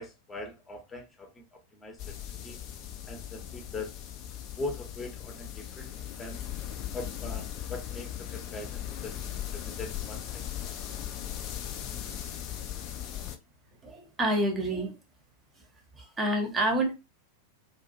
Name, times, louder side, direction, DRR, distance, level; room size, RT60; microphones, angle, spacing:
voice 1, 0.0-1.4 1.7-2.0 2.3-2.6 3.1-3.9 4.6-6.4 6.9-10.4, left 2 dB, 15° left, 0.8 m, -41 dB
sound 1, 2.0-13.4, left 11 dB, 40° left, 0.4 m, -38 dB
voice 2, 13.8-14.9 16.0-16.9, right 1 dB, 20° right, 0.8 m, -28 dB
2.5 x 2.3 x 2.7 m
figure-of-eight pair, 90°, 0 cm